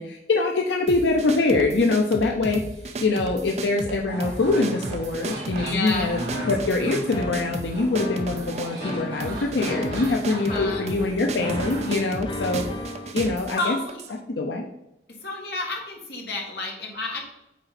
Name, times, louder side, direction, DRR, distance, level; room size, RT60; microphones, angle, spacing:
voice 1, 0.0-6.2 6.5-12.6 13.1-13.8 14.3-14.6, left 3 dB, 90° left, 2 dB, 0.6 m, -24 dB
sound 1, 0.9-14.2, right 3 dB, 35° right, 0.5 m, -35 dB
sound 2, 4.1-12.0, right 1 dB, 65° right, 2.4 m, -36 dB
voice 2, 5.5-6.1 10.3-10.9 13.1-13.2 13.5-14.0 15.2-17.2, left 2 dB, 65° left, 0 dB, 1.7 m, -30 dB
sound 3, 6.3-13.1, left 2 dB, 30° left, 0.5 m, -35 dB
8.4 x 3.9 x 4.2 m, 0.87 s
head